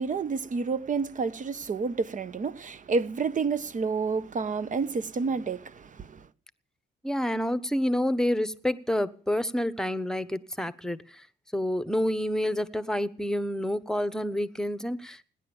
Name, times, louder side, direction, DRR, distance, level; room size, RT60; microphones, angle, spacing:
voice 1, 0.0-6.3, right 4 dB, 40° right, 1.1 m, -29 dB
voice 2, 7.0-11.3 11.5-15.2, left 1 dB, 5° left, 1.2 m, -28 dB
18.0 x 10.5 x 7.2 m
cardioid pair, 90°, 20 cm